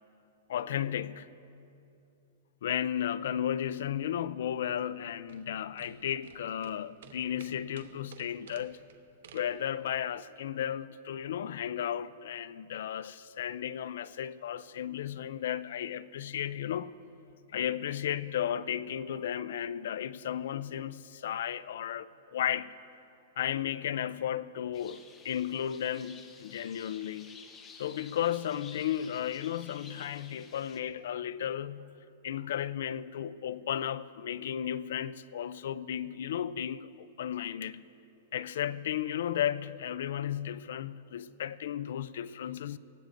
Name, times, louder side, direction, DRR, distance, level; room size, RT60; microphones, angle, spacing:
voice 1, 0.5-1.3 2.6-8.8 9.3-16.9 17.5-22.8 23.4-27.4 27.7-37.8 38.3-42.8, left 10 dB, 70° left, 0.4 m, -34 dB
sound 1, 4.8-10.1, right 8 dB, 75° right, 0.9 m, -54 dB
sound 2, 24.7-30.8, left 5 dB, 20° left, 0.9 m, -52 dB
19.5 x 15.5 x 2.6 m
hypercardioid pair, 145°, 0 cm